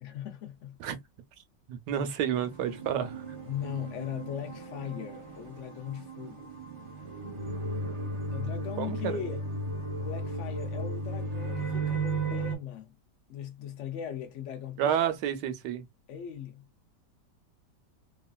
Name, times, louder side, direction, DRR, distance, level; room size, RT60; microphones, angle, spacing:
voice 1, 0.0-0.8 3.5-6.5 8.3-9.4 10.0-13.0 13.3-15.0 16.1-16.7, left 9 dB, 80° left, 0.6 m, -39 dB
voice 2, 1.7-3.2 8.8-9.2 14.8-15.8, right 9 dB, 80° right, 1.3 m, -30 dB
sound 1, 2.3-12.5, right 2 dB, 35° right, 0.5 m, -35 dB
3.0 x 2.5 x 2.3 m
omnidirectional pair, 1.9 m